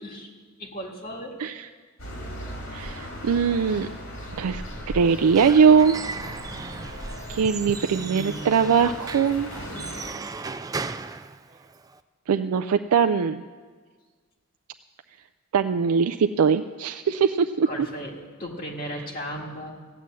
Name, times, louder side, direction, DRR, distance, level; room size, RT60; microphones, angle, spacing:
voice 1, 0.6-1.4 17.7-18.1 18.4-19.7, equal, 40° left, -1 dB, 1.9 m, -35 dB
sound 1, 2.0-10.1, equal, 60° left, 3.1 m, -38 dB
voice 2, 2.7-3.9 4.3-4.6 4.9-6.0 7.3-9.5 12.3-13.4 15.5-17.7, right 6 dB, 85° right, 9 dB, 0.4 m, -21 dB
Squeak / Wood, 5.1-12.0, right 4 dB, 15° right, 0.3 m, -36 dB
15.5 x 9.3 x 7.6 m, 1.5 s
head